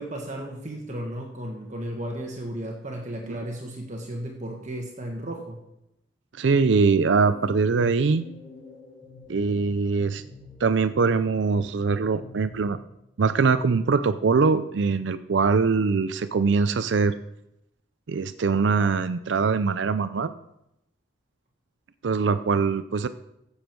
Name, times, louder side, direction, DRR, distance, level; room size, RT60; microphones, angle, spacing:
voice 1, 0.0-5.6, right 1 dB, 40° right, 0 dB, 1.5 m, -34 dB
voice 2, 6.4-8.3 9.3-10.2 10.6-12.8 13.2-17.1 18.1-20.3 22.0-23.1, right 4 dB, 70° right, 12 dB, 0.5 m, -22 dB
sound 1, 7.2-12.8, left 3 dB, 5° left, 5.5 m, -47 dB
15.0 x 7.2 x 4.6 m, 0.83 s
head